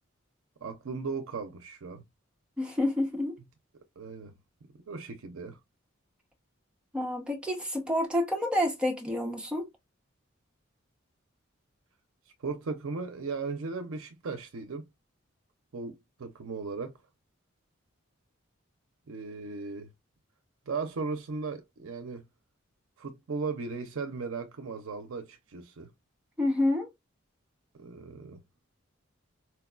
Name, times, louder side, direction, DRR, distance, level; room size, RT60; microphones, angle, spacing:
voice 1, 0.6-2.0 4.0-4.3 4.9-5.6 12.4-14.9 15.7-16.9 19.1-19.9 20.7-22.3 23.0-25.9 27.7-28.4, right 4 dB, 85° right, 0.5 m, -37 dB
voice 2, 2.6-3.4 6.9-9.7 26.4-26.9, left 1 dB, 5° right, 0.8 m, -28 dB
4.4 x 2.2 x 2.3 m
head